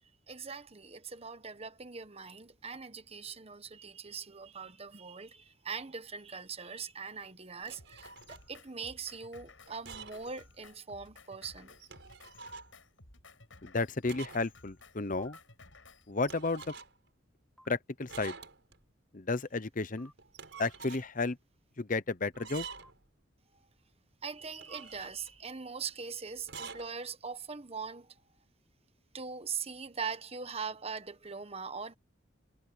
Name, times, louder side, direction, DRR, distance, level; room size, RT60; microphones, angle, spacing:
voice 1, 0.3-11.7 24.2-28.1 29.1-32.0, right 5 dB, 30° right, 1.3 m, -41 dB
sound 1, 7.6-8.5 9.7-10.3 10.6-10.7 11.7-12.7 14.0-14.5 14.8-14.9 16.2-17.1 18.1-18.8 20.2-21.1 22.3-23.0 24.4-25.4 26.4-26.9, right 5 dB, 70° right, 5.2 m, -47 dB
Drum kit, 7.8-16.1, left 3 dB, 90° left, 7.9 m, -57 dB
voice 2, 13.6-15.4 16.1-16.6 17.7-18.3 19.1-20.1 20.6-21.4 21.8-22.7, left 3 dB, 45° left, 0.9 m, -32 dB
sound 2, 15.2-15.4 17.6-17.7 20.0-20.1 22.4-22.9, equal, ahead, 5.2 m, -57 dB
head